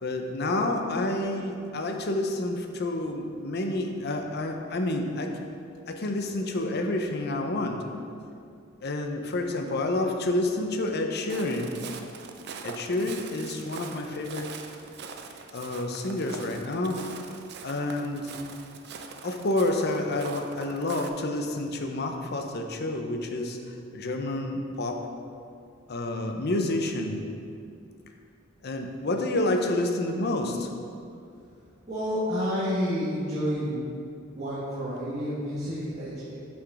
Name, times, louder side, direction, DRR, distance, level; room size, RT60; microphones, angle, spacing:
voice 1, 0.0-5.3 5.9-7.8 8.8-11.7 12.6-14.5 15.5-17.1 17.6-18.3 19.2-23.6 23.9-25.0 25.9-27.2 28.6-30.7, left 2 dB, 55° left, 4 dB, 0.7 m, -29 dB
Walk footsteps, 11.3-21.1, right 5 dB, 55° right, 0.5 m, -42 dB
voice 2, 31.9-33.8 34.3-36.4, equal, 35° right, -10 dB, 1.5 m, -29 dB
6.2 x 6.0 x 4.8 m, 2.4 s
head